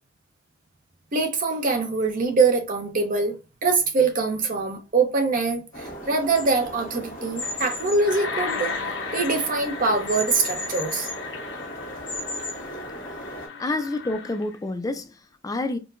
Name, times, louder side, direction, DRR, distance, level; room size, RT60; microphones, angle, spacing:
voice 1, 1.1-3.3 3.6-8.7 9.1-11.1 13.6-13.7, right 4 dB, 45° right, 0.7 m, -23 dB
sound 1, 5.7-13.5, left 1 dB, 45° left, 1.6 m, -35 dB
sound 2, 7.4-14.5, left 4 dB, 65° left, 0.7 m, -35 dB
voice 2, 13.6-15.8, left 2 dB, 20° left, 0.3 m, -28 dB
4.5 x 2.1 x 2.5 m
head